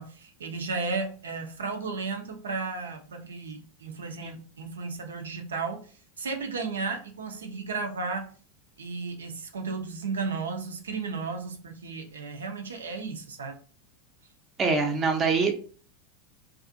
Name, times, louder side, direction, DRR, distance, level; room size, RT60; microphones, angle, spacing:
voice 1, 0.0-8.3 8.8-13.6, right 4 dB, 75° right, 0.5 m, -34 dB
voice 2, 14.6-15.5, right 4 dB, 25° right, 0.6 m, -24 dB
2.5 x 2.4 x 2.5 m
figure-of-eight pair, 85°, 0 cm